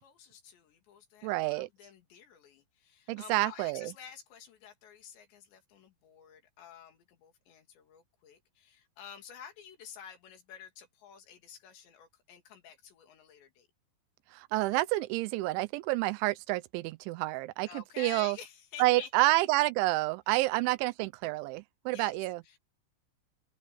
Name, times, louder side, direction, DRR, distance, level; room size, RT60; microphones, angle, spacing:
voice 1, 0.0-13.7 17.7-19.1 21.9-22.2 22.5-22.6, left 8 dB, 70° left, 4.7 m, -50 dB
voice 2, 1.2-1.7 3.1-3.9 14.3-18.4 18.8-22.4, right 19 dB, 85° right, 3.1 m, -29 dB
open air
omnidirectional pair, 5.3 m